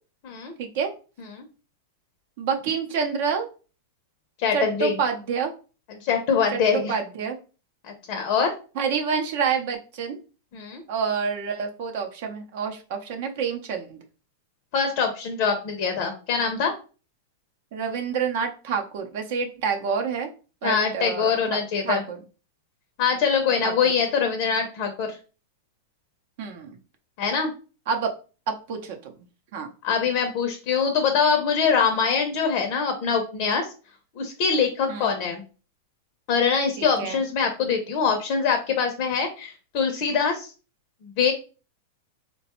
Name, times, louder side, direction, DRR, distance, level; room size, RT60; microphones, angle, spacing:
voice 1, 0.6-0.9 2.4-3.5 4.5-5.5 6.5-7.4 8.8-10.2 10.9-14.0 17.7-20.3 20.6-22.2 23.6-23.9 26.4-26.8 27.9-28.1 28.5-29.1 29.5-29.7 34.9-35.1 37.0-37.2, right 6 dB, 50° right, 4 dB, 0.6 m, -28 dB
voice 2, 4.4-4.9 6.0-6.9 8.1-8.5 10.5-10.8 14.7-16.7 20.6-22.0 23.0-25.2 27.2-27.5 29.8-33.7 34.2-35.4 36.3-40.5 41.0-41.3, left 6 dB, 40° left, 4 dB, 0.6 m, -23 dB
4.0 x 2.2 x 2.9 m, 0.35 s
supercardioid pair, 160°, 0 cm